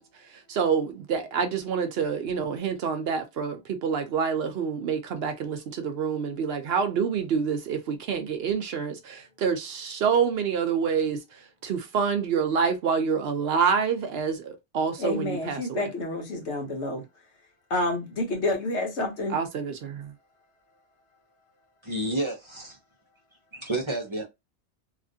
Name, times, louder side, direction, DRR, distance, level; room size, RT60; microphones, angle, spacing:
voice 1, 0.3-15.9 19.3-20.1, right 6 dB, 65° right, 0.8 m, -27 dB
voice 2, 15.0-17.0 17.7-19.4, left 2 dB, 75° left, 1.3 m, -29 dB
voice 3, 21.8-22.8 23.5-24.3, right 1 dB, 30° right, 0.7 m, -30 dB
2.9 x 2.5 x 2.6 m
omnidirectional pair, 1.2 m